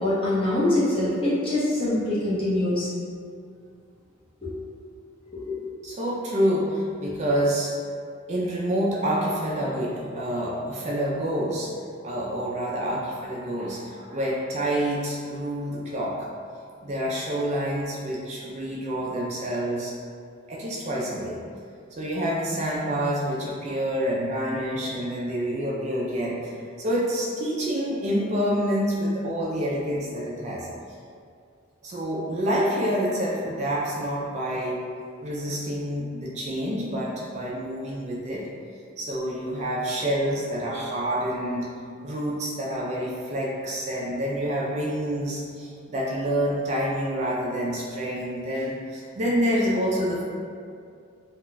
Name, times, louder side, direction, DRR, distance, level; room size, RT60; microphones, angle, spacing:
voice 1, 0.0-2.9 4.4-4.5 5.3-5.6, left 1 dB, 25° left, -9 dB, 0.7 m, -24 dB
voice 2, 5.8-7.7 8.3-11.7 12.0-16.3 16.8-19.9 20.5-21.4 21.9-30.7 31.8-34.8 35.2-38.5 39.0-41.7 42.0-50.2, equal, 35° right, -4 dB, 0.3 m, -27 dB
2.3 x 2.2 x 3.8 m, 2.3 s
head